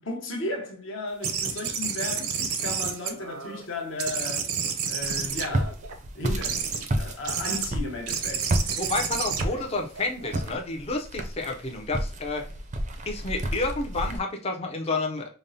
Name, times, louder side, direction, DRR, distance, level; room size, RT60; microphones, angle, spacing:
voice 1, 0.0-4.5 4.9-5.8 6.1-8.9, left 2 dB, 60° left, 0.8 m, -35 dB
sound 1, 1.2-3.6 4.0-5.9 6.4-6.9 7.2-7.7 8.1-10.6, right 6 dB, 80° right, 0.6 m, -30 dB
Walk footsteps, 5.0-14.2, right 1 dB, 35° right, 0.4 m, -32 dB
voice 2, 8.8-12.5 13.1-15.3, left 3 dB, 30° left, 0.5 m, -30 dB
5.1 x 2.0 x 2.6 m
head